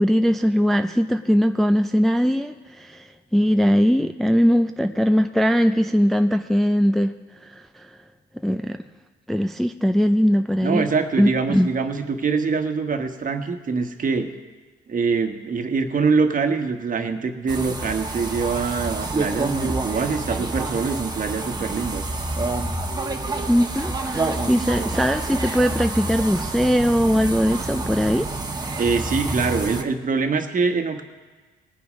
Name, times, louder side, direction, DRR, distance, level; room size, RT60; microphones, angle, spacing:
voice 1, 0.0-7.1 7.4-7.9 8.4-8.9 9.3-10.9 11.2-11.7 23.5-28.3, equal, ahead, 7 dB, 0.4 m, -20 dB
voice 2, 10.6-14.3 14.9-22.0 28.8-31.0, right 4 dB, 40° right, 6 dB, 1.3 m, -24 dB
sound 1, 17.5-29.8, right 2 dB, 20° right, 1.3 m, -28 dB
20.0 x 7.0 x 5.1 m, 1.4 s
cardioid pair, 90°, 20 cm